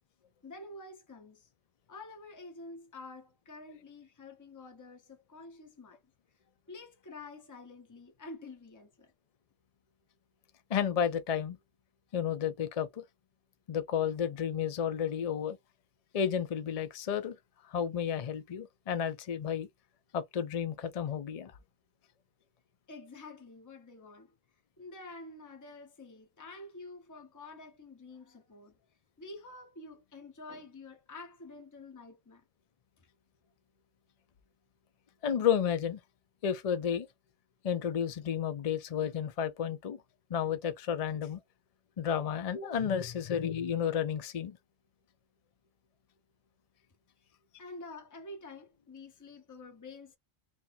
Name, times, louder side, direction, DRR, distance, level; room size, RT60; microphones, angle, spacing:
voice 1, 0.4-1.5 1.9-6.0 6.7-9.1 22.9-24.3 24.8-28.8 29.2-32.4 33.0-33.1 47.2-47.3 47.6-50.2, left 2 dB, 15° left, 0.8 m, -48 dB
voice 2, 10.7-11.6 12.1-13.0 13.7-15.6 16.1-17.4 17.7-19.7 20.1-21.5 35.2-36.0 36.4-37.1 37.6-40.0 40.3-41.4 42.0-44.6, left 8 dB, 45° left, 0.5 m, -32 dB
2.8 x 2.6 x 4.0 m
omnidirectional pair, 1.3 m